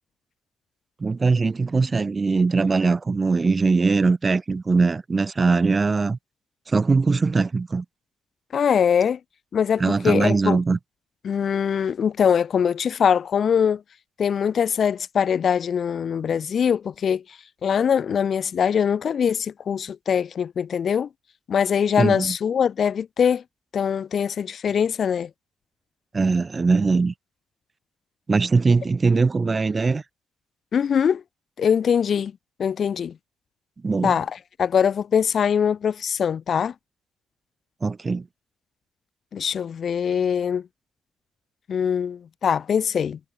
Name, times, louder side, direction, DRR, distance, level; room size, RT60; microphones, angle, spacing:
voice 1, 1.0-6.2 6.7-7.8 9.8-10.8 22.0-22.3 26.1-27.1 28.3-30.0 33.8-34.2 37.8-38.3, right 4 dB, 20° right, 1.1 m, -21 dB
voice 2, 8.5-9.2 9.5-10.6 11.2-13.8 14.2-17.2 17.6-21.1 21.5-23.4 23.7-25.3 30.7-31.2 31.6-32.3 32.6-33.1 34.0-34.3 34.6-36.7 39.3-40.7 41.7-43.2, left 7 dB, 40° left, 0.9 m, -22 dB
cardioid pair, 170°, 0 cm